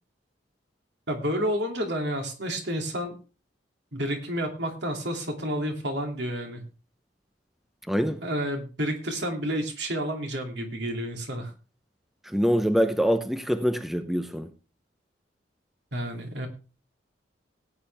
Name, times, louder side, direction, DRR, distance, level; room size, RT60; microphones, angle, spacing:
voice 1, 1.1-3.2 3.9-6.6 8.2-11.5 15.9-16.5, equal, 65° right, 2.7 m, -30 dB
voice 2, 7.9-8.2 12.2-14.5, equal, ahead, 0.6 m, -24 dB
17.5 x 9.0 x 3.4 m
head